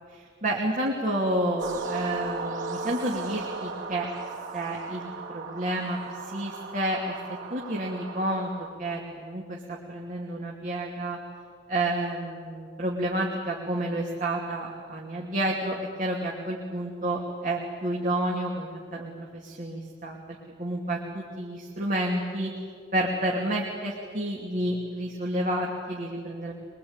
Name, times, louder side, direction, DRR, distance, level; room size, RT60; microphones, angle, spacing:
voice 1, 0.1-4.1 4.5-8.5 8.8-11.2 11.7-22.5 22.9-26.5, right 1 dB, 45° right, -2 dB, 2.9 m, -30 dB
sound 1, 1.6-8.7, right 3 dB, 80° right, 3.2 m, -37 dB
24.0 x 23.0 x 9.0 m, 2.1 s
head